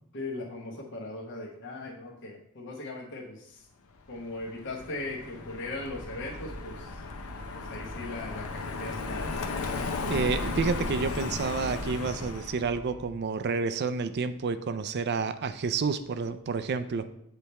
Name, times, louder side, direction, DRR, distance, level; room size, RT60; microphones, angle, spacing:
voice 1, 0.1-3.6 4.1-7.0 7.5-9.3, left 2 dB, 55° left, -3 dB, 1.1 m, -39 dB
Car passing by, 4.1-12.7, left 3 dB, 70° left, 0.6 m, -35 dB
sound 1, 5.8-13.0, right 1 dB, ahead, 0.8 m, -46 dB
voice 2, 10.0-17.1, right 5 dB, 50° right, 11 dB, 0.4 m, -30 dB
8.1 x 3.4 x 4.2 m, 0.73 s
head